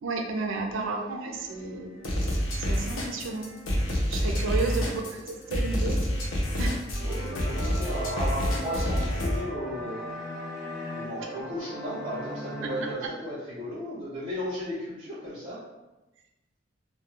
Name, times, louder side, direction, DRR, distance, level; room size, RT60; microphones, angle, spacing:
voice 1, 0.0-1.9 2.6-3.5 4.1-5.9 6.6-6.8, right 3 dB, 75° right, 2 dB, 0.4 m, -32 dB
voice 2, 0.7-1.1 4.8-5.1 7.0-10.0 10.9-15.6, equal, 25° right, -13 dB, 0.6 m, -35 dB
sound 1, 1.3-12.9, left 1 dB, 35° left, 0.5 m, -40 dB
sound 2, 2.0-9.4, equal, 80° left, 0.5 m, -28 dB
2.2 x 2.2 x 3.0 m, 1.0 s
head